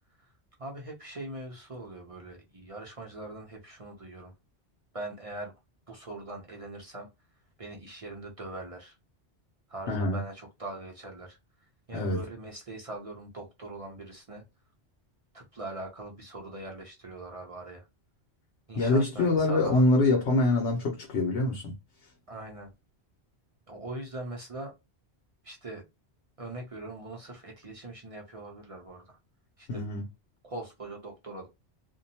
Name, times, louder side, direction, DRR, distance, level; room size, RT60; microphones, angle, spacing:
voice 1, 0.6-4.3 4.9-5.5 5.9-7.1 7.6-9.0 9.7-14.4 15.3-17.9 18.7-19.8 22.3-22.7 23.7-24.7 25.4-25.8 26.4-29.2 29.6-29.8 30.4-31.5, right 2 dB, 40° right, 0.5 m, -41 dB
voice 2, 9.9-10.2 11.9-12.2 18.8-21.7 29.7-30.0, left 2 dB, 85° left, 1.1 m, -25 dB
2.6 x 2.2 x 2.7 m
omnidirectional pair, 1.1 m